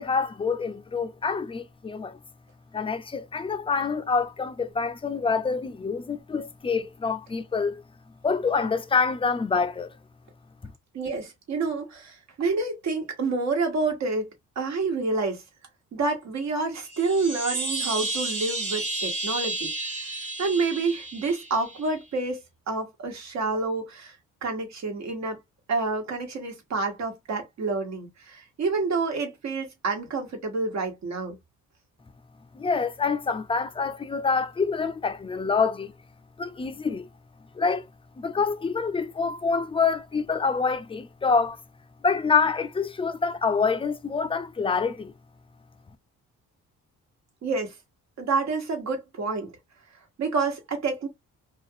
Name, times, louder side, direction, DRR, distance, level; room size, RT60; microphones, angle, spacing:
voice 1, 0.0-2.2 2.7-7.8 8.2-10.0 10.6-10.7 32.5-35.9 36.4-37.1 37.5-37.9 38.2-41.6 42.0-45.1, left 5 dB, 20° left, 0.4 m, -26 dB
voice 2, 10.9-14.3 14.5-15.4 15.9-20.1 20.4-25.4 25.7-31.4 47.4-47.7 48.2-49.5 50.2-51.1, right 3 dB, 65° right, 1.2 m, -28 dB
sound 1, 16.9-21.9, right 2 dB, 85° right, 1.6 m, -32 dB
2.4 x 2.4 x 2.6 m
cardioid pair, 90°, 30 cm